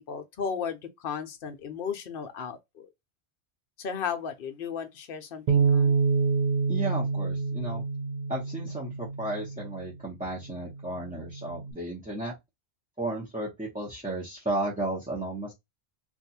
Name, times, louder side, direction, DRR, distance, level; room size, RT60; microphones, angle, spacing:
voice 1, 0.0-2.9 3.8-6.0, left 7 dB, 60° left, 0.8 m, -35 dB
Bass guitar, 5.5-9.9 10.6-11.7, right 5 dB, 55° right, 0.5 m, -27 dB
voice 2, 6.7-7.8 8.3-12.3 13.0-15.5, right 2 dB, 10° right, 0.7 m, -34 dB
2.6 x 2.3 x 4.1 m
omnidirectional pair, 1.2 m